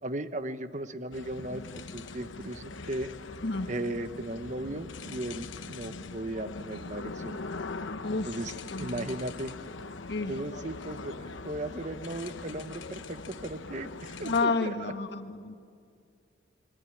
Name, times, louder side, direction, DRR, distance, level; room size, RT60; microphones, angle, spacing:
voice 1, 0.0-3.1 3.6-7.4 8.1-9.5 10.3-14.9, right 1 dB, 40° right, 10 dB, 1.1 m, -36 dB
sound 1, 1.1-14.5, left 3 dB, 90° left, 1.1 m, -41 dB
voice 2, 3.4-3.7 8.0-8.3 8.7-9.1 10.1-10.4 14.2-15.6, left 3 dB, 60° left, 7 dB, 1.5 m, -30 dB
25.5 x 22.5 x 10.0 m, 2.3 s
head